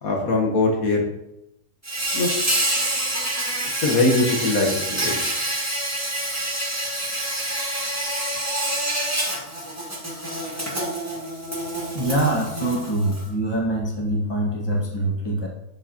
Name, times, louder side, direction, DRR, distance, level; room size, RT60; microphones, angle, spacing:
voice 1, 0.0-1.1 2.1-2.3 3.8-5.2, left 2 dB, 75° left, 0 dB, 1.7 m, -21 dB
Insect, 1.8-13.3, right 1 dB, 10° right, 1.7 m, -27 dB
voice 2, 11.9-15.5, right 1 dB, 20° left, -2 dB, 1.4 m, -24 dB
8.9 x 6.2 x 2.9 m, 0.87 s
omnidirectional pair, 1.5 m